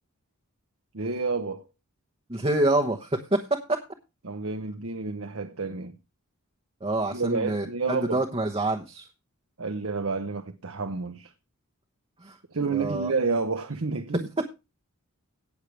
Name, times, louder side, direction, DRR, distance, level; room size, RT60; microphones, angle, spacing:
voice 1, 0.9-1.7 4.2-6.0 7.1-8.2 9.6-11.3 12.5-14.3, right 4 dB, 65° right, 0.9 m, -30 dB
voice 2, 2.3-3.8 6.8-9.1 12.2-12.4 12.7-13.1 14.1-14.4, right 2 dB, 25° right, 1.0 m, -27 dB
18.0 x 6.6 x 3.3 m
head